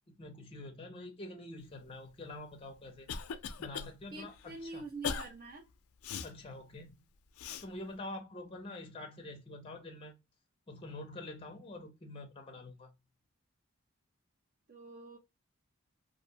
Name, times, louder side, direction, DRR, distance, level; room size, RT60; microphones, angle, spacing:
voice 1, 0.2-3.1 3.6-4.9 6.2-7.0 7.6-10.2 10.7-12.9, left 2 dB, 25° left, 0.5 m, -46 dB
Cough, 2.5-3.9 4.3-4.5 5.0-5.3 6.0-6.3 7.4-7.7, left 7 dB, 85° left, 0.4 m, -39 dB
voice 2, 4.1-5.7 14.7-15.2, right 3 dB, 40° right, 0.4 m, -45 dB
2.5 x 2.1 x 2.6 m
head